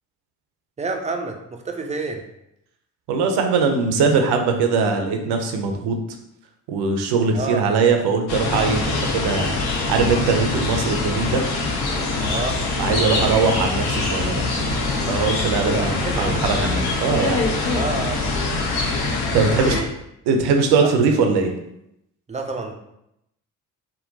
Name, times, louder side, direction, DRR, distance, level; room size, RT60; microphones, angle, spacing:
voice 1, 0.8-2.2 7.3-7.6 12.2-12.6 12.9-13.3 15.6-16.4 17.7-18.2 19.5-19.9 20.8-20.9 22.3-22.7, right 3 dB, 15° right, 4 dB, 0.5 m, -29 dB
voice 2, 3.1-5.9 6.7-9.6 9.9-11.4 12.8-14.5 15.1-17.4 19.3-19.7 20.3-21.5, right 4 dB, 65° right, 5 dB, 0.6 m, -21 dB
sound 1, 8.3-19.8, left 3 dB, 60° left, 0.8 m, -24 dB
3.7 x 2.1 x 2.6 m, 0.82 s
hypercardioid pair, 45°, 44 cm